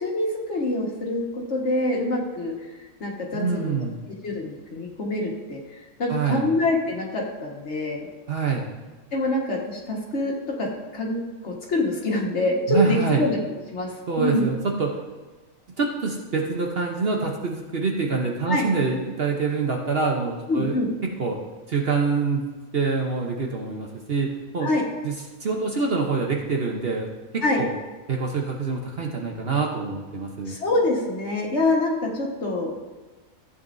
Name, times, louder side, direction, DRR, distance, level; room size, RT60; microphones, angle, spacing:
voice 1, 0.0-2.5 3.0-3.8 4.2-5.6 6.0-8.1 9.1-10.7 10.9-13.4 13.7-14.4 18.5-18.6 20.5-20.9 24.6-24.8 27.4-27.6 30.5-32.7, left 2 dB, 55° left, -2 dB, 1.9 m, -25 dB
voice 2, 3.3-4.0 6.1-6.5 8.3-8.6 12.7-13.2 14.1-15.0 15.8-20.8 21.2-21.4 21.7-22.5 22.7-24.7 25.0-25.2 25.4-27.1 27.3-27.7 28.1-30.6, right 4 dB, 50° right, 0 dB, 1.1 m, -25 dB
15.0 x 8.3 x 2.7 m, 1.3 s
omnidirectional pair, 1.4 m